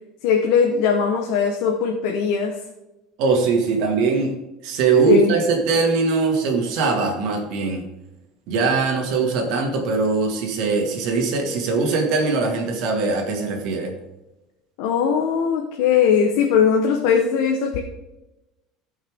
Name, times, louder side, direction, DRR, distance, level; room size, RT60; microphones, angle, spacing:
voice 1, 0.2-2.6 5.0-5.3 14.8-17.8, left 6 dB, 70° left, 1 dB, 1.1 m, -19 dB
voice 2, 3.2-4.4 4.6-7.8 8.5-13.9, right 4 dB, 60° right, 2 dB, 2.1 m, -21 dB
15.5 x 5.7 x 3.6 m, 0.99 s
cardioid pair, 165°, 0 cm